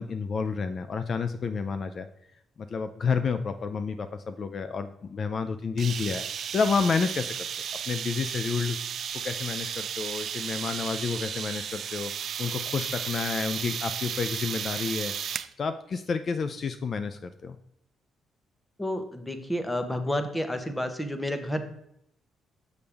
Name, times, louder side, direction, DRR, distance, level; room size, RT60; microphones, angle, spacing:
voice 1, 0.0-2.1 2.6-6.2 6.5-7.3 7.9-8.8 9.2-12.1 12.4-15.1 15.6-17.6, left 5 dB, 50° left, 10 dB, 0.4 m, -30 dB
sound 1, 5.8-15.5, right 8 dB, 60° right, 0.4 m, -34 dB
voice 2, 18.8-21.6, left 1 dB, 10° left, 8 dB, 1.0 m, -30 dB
6.9 x 6.5 x 3.4 m, 0.78 s
cardioid pair, 90°, 0 cm